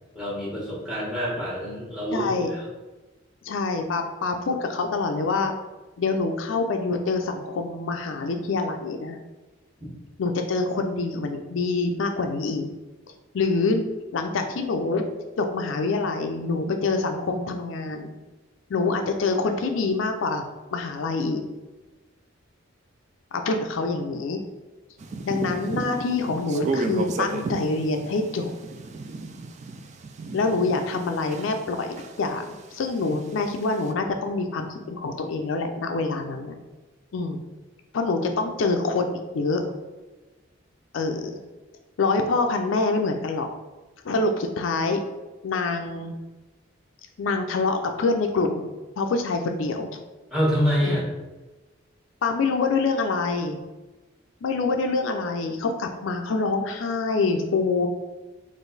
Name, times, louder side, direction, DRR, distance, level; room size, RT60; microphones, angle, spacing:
voice 1, 0.1-2.6 50.3-51.0, equal, 5° right, -6 dB, 1.3 m, -26 dB
voice 2, 2.1-2.5 3.4-5.5 6.0-9.2 10.2-12.7 13.3-13.9 14.1-15.0 15.4-18.2 18.7-20.4 20.7-21.4 23.3-24.4 25.2-28.5 30.3-36.6 37.1-37.4 37.9-39.6 40.9-41.4 42.0-43.5 44.0-45.0 45.4-46.1 47.2-50.0 50.8-51.0 52.2-53.6 54.4-57.9, left 3 dB, 70° left, 5 dB, 0.4 m, -26 dB
sound 1, 25.0-31.7 32.0-33.9, right 3 dB, 35° right, 0.3 m, -33 dB
3.8 x 2.5 x 3.9 m, 1.2 s
head